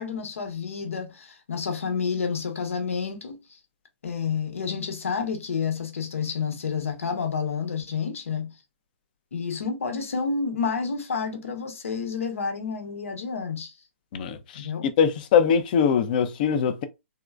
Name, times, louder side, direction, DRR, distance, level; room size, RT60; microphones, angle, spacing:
voice 1, 0.0-3.4 4.0-8.5 9.3-13.7 14.5-14.9, left 5 dB, 90° left, 1.1 m, -29 dB
voice 2, 15.0-16.8, left 7 dB, 40° left, 0.5 m, -21 dB
3.6 x 2.1 x 2.4 m
hypercardioid pair, 150°, 7 cm